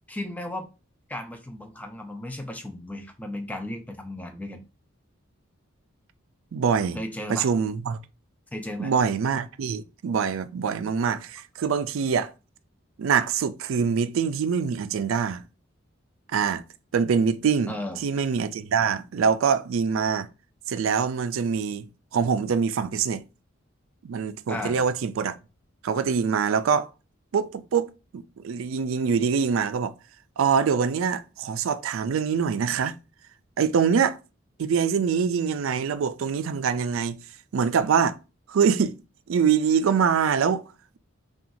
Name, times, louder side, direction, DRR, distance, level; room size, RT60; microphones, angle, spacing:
voice 1, 0.1-0.7 1.1-4.6 6.9-7.5 8.5-8.9 17.7-18.0 24.5-24.8, left 1 dB, 5° left, 0.5 m, -35 dB
voice 2, 6.5-7.0 7.3-8.0 8.8-12.3 13.0-15.4 16.3-16.6 16.9-20.3 20.7-23.2 24.0-25.4 25.8-26.9 27.3-29.9 30.4-32.9 33.6-34.2 34.6-37.2 37.5-38.2 38.5-39.0 39.3-40.6, right 6 dB, 75° right, 0.4 m, -24 dB
5.6 x 2.4 x 2.6 m
head